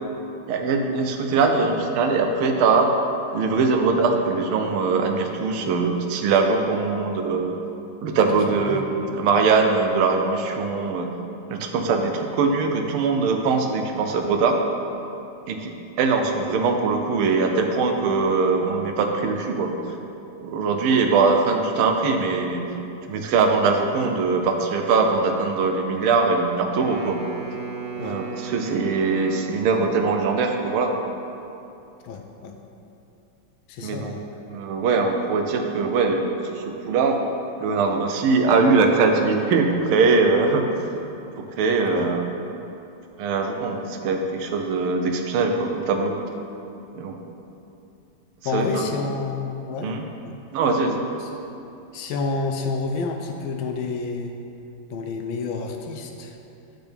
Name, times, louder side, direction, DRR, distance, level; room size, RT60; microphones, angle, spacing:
voice 1, 0.5-2.9 3.3-7.5 8.0-11.1 11.5-14.6 15.5-15.7 16.0-19.7 20.4-22.7 23.1-27.2 28.0-30.9 33.8-34.1 34.5-37.2 37.6-40.7 41.4-42.2 43.2-46.2 46.9-47.2 48.5-48.9 49.8-50.0 50.5-51.0, right 4 dB, 80° right, 4 dB, 1.5 m, -22 dB
Wind instrument woodwind instrument, 26.7-30.2, right 5 dB, 55° right, 1.7 m, -36 dB
voice 2, 32.0-32.5 33.7-34.4 41.9-42.1 48.4-49.9 50.2-50.3 51.2-51.3 51.9-54.3 54.9-56.4, left 4 dB, 75° left, 4 dB, 1.3 m, -29 dB
8.2 x 5.9 x 3.4 m, 2.8 s
omnidirectional pair, 2.4 m